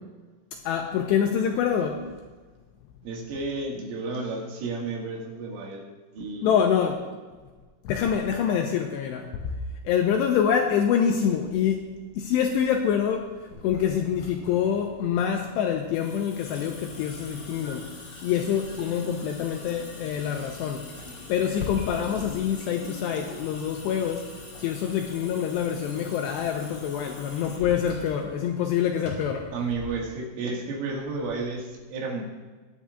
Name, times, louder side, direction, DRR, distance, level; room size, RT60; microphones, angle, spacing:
voice 1, 0.7-2.1 6.4-7.1 7.9-9.3 9.9-11.9 12.2-13.3 13.6-17.9 18.2-20.9 21.3-24.3 24.6-29.5, left 8 dB, 90° left, 3 dB, 2.5 m, -26 dB
voice 2, 3.0-5.8 6.1-6.5 29.5-32.2, right 3 dB, 85° right, -1 dB, 4.4 m, -32 dB
Water tap faucet / Sink (filling or washing) / Drip, 13.5-29.5, left 3 dB, 45° left, 4.6 m, -43 dB
23.0 x 8.5 x 2.4 m, 1.3 s
omnidirectional pair, 5.6 m